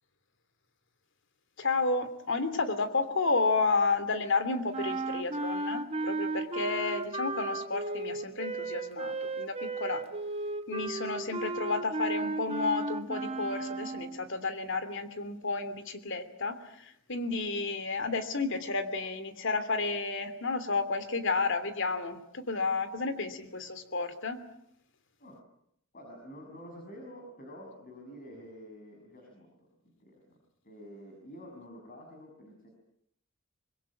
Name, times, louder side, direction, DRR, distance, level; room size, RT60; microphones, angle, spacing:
voice 1, 1.6-10.0 10.7-24.4, left 3 dB, 60° left, 11 dB, 3.0 m, -31 dB
sound 1, 4.7-14.3, right 2 dB, 30° right, 1.2 m, -35 dB
voice 2, 25.9-29.7 30.0-30.4 30.6-32.7, equal, 45° left, 1 dB, 6.7 m, -48 dB
26.0 x 22.5 x 8.7 m, 0.72 s
head